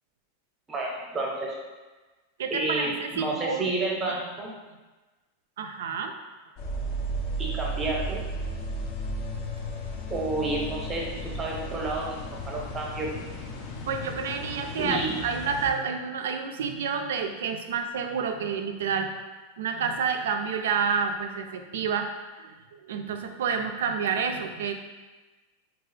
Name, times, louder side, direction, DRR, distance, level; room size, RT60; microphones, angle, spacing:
voice 1, 0.7-1.6 2.5-4.5 7.4-8.2 10.1-12.2 12.4-13.3 14.8-15.1, right 2 dB, 20° right, -2 dB, 0.6 m, -30 dB
voice 2, 2.4-3.7 5.6-6.1 13.8-19.1 19.6-22.1 22.4-22.6 22.8-24.7, right 6 dB, 85° right, 6 dB, 0.3 m, -29 dB
sound 1, 6.6-15.7, right 1 dB, 45° left, 0.4 m, -34 dB
2.7 x 2.4 x 3.2 m, 1.2 s
supercardioid pair, 140°, 0 cm